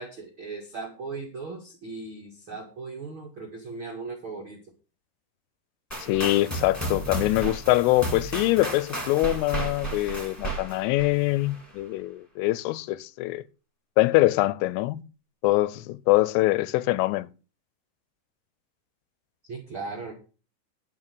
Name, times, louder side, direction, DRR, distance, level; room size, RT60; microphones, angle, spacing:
voice 1, 0.0-4.6 19.4-20.1, right 4 dB, 75° right, 1.2 m, -38 dB
sound 1, 5.9-11.7, right 2 dB, 5° left, 1.8 m, -34 dB
voice 2, 6.0-13.4 14.0-15.0 15.4-17.3, left 18 dB, 80° left, 3.0 m, -24 dB
11.5 x 5.1 x 7.7 m
omnidirectional pair, 5.9 m